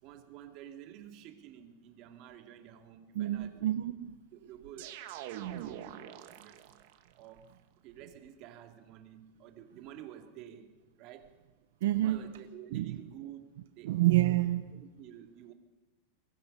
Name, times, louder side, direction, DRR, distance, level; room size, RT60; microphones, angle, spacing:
voice 1, 0.0-3.6 4.3-6.8 7.2-7.6 7.8-11.4 12.0-13.9 14.7-15.5, right 10 dB, 40° right, 5 dB, 2.3 m, -50 dB
voice 2, 3.1-4.2 11.8-12.3 12.7-13.0 13.8-14.8, right 15 dB, 75° right, 10 dB, 0.8 m, -28 dB
sound 1, 4.8-7.0, right 11 dB, 60° right, 1.8 m, -43 dB
24.5 x 21.5 x 5.5 m, 1.1 s
supercardioid pair, 155°, 0 cm